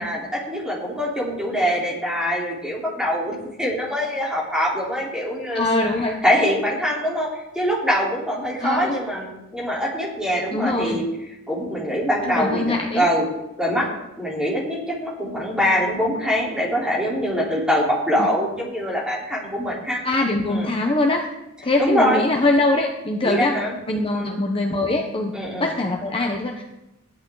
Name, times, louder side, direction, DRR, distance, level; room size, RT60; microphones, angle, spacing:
voice 1, 0.0-5.7 6.2-11.0 11.5-13.3 13.6-13.9 14.2-20.0 20.5-20.7 21.8-22.2 23.2-23.7 24.1-24.4 25.3-25.7, equal, 5° right, -5 dB, 4.0 m, -23 dB
voice 2, 5.5-6.2 8.6-9.0 10.5-11.1 12.2-13.1 18.2-18.3 20.0-21.3 21.6-23.5 23.9-25.3 25.6-26.6, left 2 dB, 25° left, 2 dB, 1.0 m, -22 dB
15.5 x 11.0 x 4.0 m, 0.93 s
head